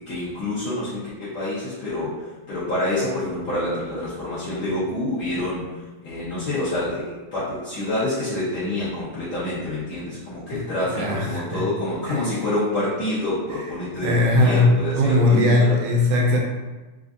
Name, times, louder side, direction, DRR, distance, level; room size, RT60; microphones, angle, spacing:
voice 1, 0.1-5.7 6.0-7.1 7.3-15.8, left 1 dB, 65° left, -12 dB, 1.3 m, -27 dB
voice 2, 10.9-11.6 12.1-12.3 14.0-16.4, left 2 dB, 85° right, 0 dB, 2.2 m, -19 dB
5.1 x 2.4 x 2.5 m, 1.2 s
omnidirectional pair, 3.5 m